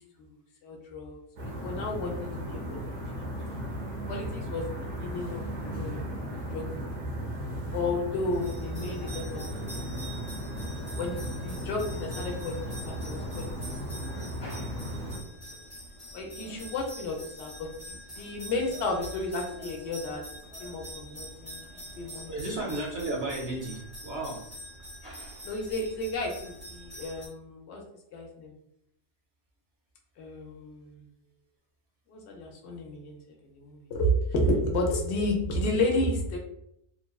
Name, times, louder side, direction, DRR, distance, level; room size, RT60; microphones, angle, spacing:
voice 1, 0.6-2.1 2.5-2.8 3.1-3.2 4.1-4.6 5.0-6.1 6.5-7.0 7.7-9.9 11.0-13.5 13.9-14.0 14.5-14.9 16.1-20.2 20.6-21.6 22.0-22.3 25.4-27.8 28.1-28.5 30.2-31.0 32.1-33.2 33.5-36.4, left 1 dB, 65° left, 1 dB, 0.8 m, -32 dB
sound 1, 1.4-15.2, equal, 90° right, 1.1 m, -36 dB
sound 2, 8.3-27.3, equal, 35° left, 0.7 m, -45 dB
voice 2, 22.3-24.4, right 2 dB, 60° right, -2 dB, 0.8 m, -33 dB
2.9 x 2.1 x 2.2 m, 0.76 s
omnidirectional pair, 1.3 m